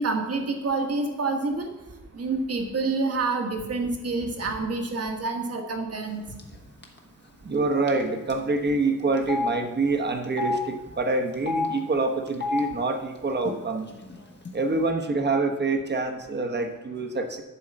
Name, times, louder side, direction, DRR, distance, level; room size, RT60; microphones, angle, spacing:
voice 1, 0.0-1.7 2.1-6.2, right 3 dB, 45° right, 4 dB, 1.4 m, -27 dB
Telephone, 6.4-6.6 6.8-7.0 7.9-8.0 8.3-8.4 9.2-9.5 10.2-10.6 11.3-11.7 12.3-12.6 13.4-13.5 13.8-14.5, left 3 dB, 35° left, 1.3 m, -29 dB
voice 2, 7.4-13.8 14.5-17.4, right 3 dB, 30° right, 5 dB, 1.1 m, -26 dB
11.5 x 4.8 x 7.5 m, 1.1 s
wide cardioid pair, 170°, 33 cm